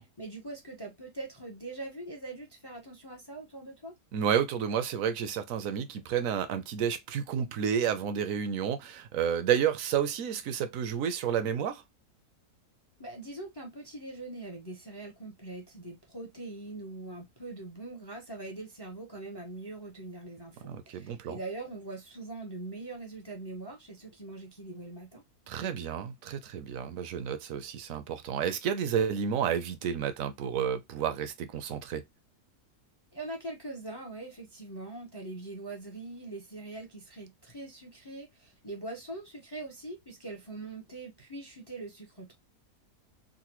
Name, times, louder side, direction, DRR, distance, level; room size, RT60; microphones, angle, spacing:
voice 1, 0.0-4.0 13.0-25.2 33.1-42.3, right 2 dB, 30° left, 0.4 m, -42 dB
voice 2, 4.1-11.8 20.6-21.4 25.5-32.0, right 8 dB, 70° right, 0.9 m, -30 dB
3.9 x 2.1 x 2.9 m
omnidirectional pair, 1.7 m